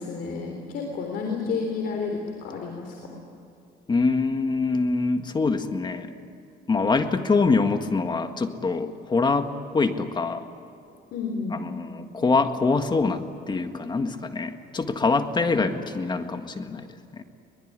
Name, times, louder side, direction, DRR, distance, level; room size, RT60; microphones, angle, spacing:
voice 1, 0.0-3.0 11.1-11.6, left 4 dB, 70° left, 2 dB, 3.7 m, -31 dB
voice 2, 3.9-6.1 6.7-10.4 11.6-16.9 17.1-17.2, left 4 dB, 25° left, 7 dB, 1.8 m, -24 dB
23.0 x 21.0 x 9.7 m, 2.7 s
cardioid pair, 110°, 17 cm